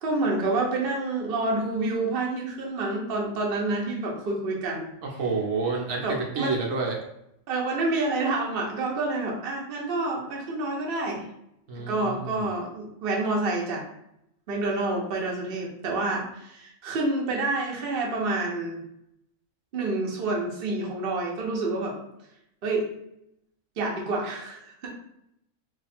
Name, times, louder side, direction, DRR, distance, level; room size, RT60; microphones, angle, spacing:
voice 1, 0.0-4.9 6.0-6.6 7.5-11.2 11.8-13.8 14.5-18.8 19.7-22.0 22.6-22.9 23.8-24.9, right 2 dB, 50° right, -2 dB, 0.9 m, -28 dB
voice 2, 5.0-6.9 11.7-12.4, right 4 dB, 75° right, -1 dB, 1.1 m, -29 dB
3.2 x 2.4 x 4.2 m, 0.78 s
omnidirectional pair, 1.4 m